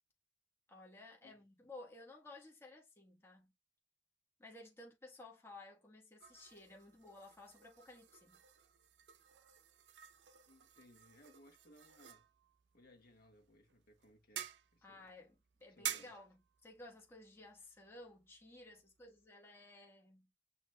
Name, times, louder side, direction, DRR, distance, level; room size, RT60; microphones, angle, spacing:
voice 1, 0.7-3.5 4.4-8.4 14.8-15.3 15.6-20.3, left 2 dB, 15° left, 1.1 m, -56 dB
sound 1, 6.2-19.3, right 10 dB, 75° right, 0.6 m, -51 dB
voice 2, 10.5-12.2 12.7-15.1 15.7-16.2, equal, 55° left, 1.3 m, -64 dB
7.9 x 2.8 x 2.2 m
head